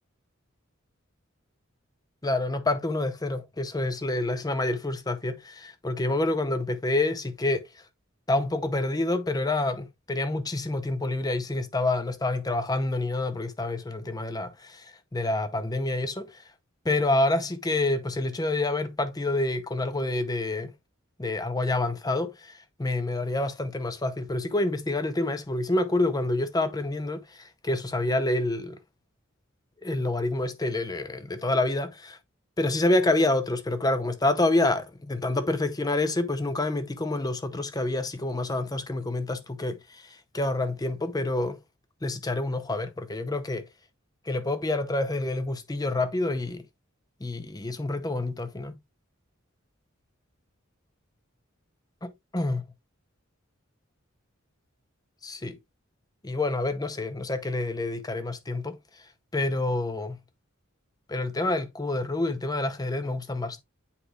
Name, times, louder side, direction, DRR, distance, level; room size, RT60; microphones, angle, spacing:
voice 1, 2.2-7.7 8.3-16.4 16.8-20.7 21.2-28.8 29.8-32.2 32.6-41.6 42.0-43.7 44.3-46.7 47.2-48.8 52.0-52.6 55.2-55.6 56.2-58.8 59.3-60.2 61.1-63.6, left 2 dB, 20° left, 0.7 m, -28 dB
8.4 x 4.8 x 2.4 m
head